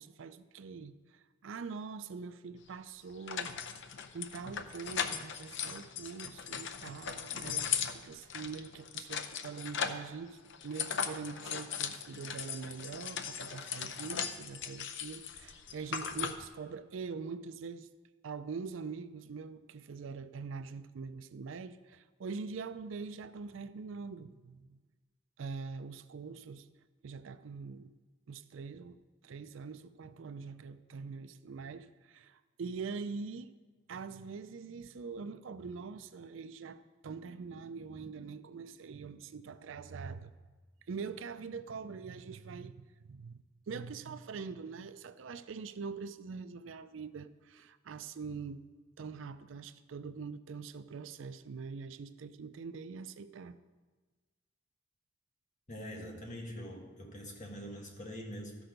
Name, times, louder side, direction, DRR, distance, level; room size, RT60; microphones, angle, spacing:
voice 1, 0.0-3.6 4.1-17.9 18.2-24.8 25.4-26.7 27.0-27.9 28.3-33.5 33.9-40.3 40.9-42.7 43.1-48.6 49.0-53.6, right 5 dB, 70° right, 0.4 m, -43 dB
sound 1, 2.6-2.7 3.3-10.1 10.5-16.5, left 7 dB, 65° left, 0.6 m, -38 dB
voice 2, 55.7-58.6, equal, 40° left, 1.6 m, -44 dB
13.0 x 6.2 x 5.1 m
head